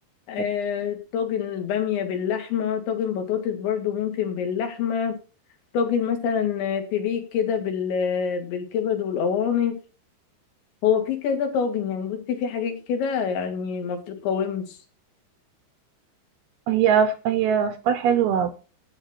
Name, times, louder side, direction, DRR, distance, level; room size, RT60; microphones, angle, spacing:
voice 1, 0.3-5.2 5.7-9.8 10.8-14.8, left 7 dB, 80° left, 5 dB, 4.4 m, -26 dB
voice 2, 16.7-18.5, right 8 dB, 80° right, 9 dB, 2.4 m, -21 dB
11.5 x 8.8 x 4.5 m, 0.35 s
omnidirectional pair, 5.2 m